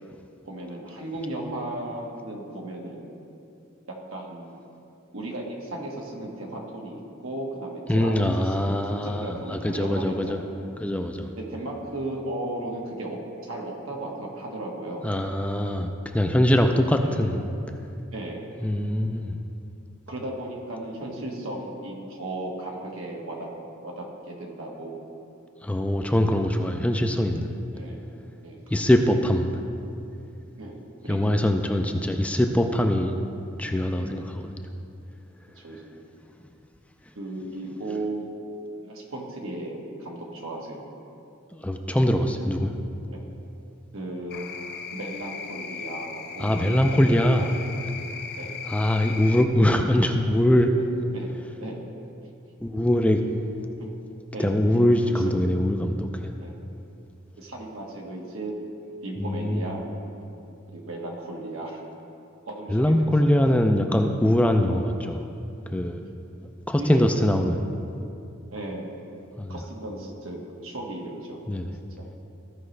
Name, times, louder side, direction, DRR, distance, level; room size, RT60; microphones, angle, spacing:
voice 1, 0.4-3.1 3.9-4.5 5.1-10.5 11.4-15.0 17.0-17.2 18.1-18.5 20.1-23.5 23.8-25.0 27.7-28.0 28.4-28.6 30.6-31.4 34.0-34.4 35.6-35.9 37.1-38.4 38.7-40.9 43.1-43.2 43.9-44.6 44.9-47.5 48.4-48.6 50.7-50.8 51.1-51.8 53.8-53.9 54.3-54.7 55.2-55.3 56.4-56.6 57.4-58.5 58.8-59.9 60.3-60.4 60.7-61.8 62.4-63.1 64.6-64.7 66.8-67.1 68.5-68.9 69.5-71.4 72.0-72.1, right 1 dB, 80° right, -1 dB, 1.4 m, -35 dB
voice 2, 7.9-10.4 10.8-11.3 15.0-17.4 18.6-19.4 25.6-27.5 28.7-29.5 31.1-33.1 33.6-34.5 37.6-37.7 41.5-42.7 46.4-47.5 48.7-50.7 52.6-53.2 54.4-56.3 59.2-59.8 62.7-65.2 65.7-66.0 66.7-67.7 69.4-69.5 71.5-71.8, left 1 dB, 5° left, 4 dB, 0.3 m, -22 dB
sound 1, 44.3-49.5, left 5 dB, 50° left, 0.6 m, -37 dB
15.0 x 5.2 x 3.2 m, 2.7 s
head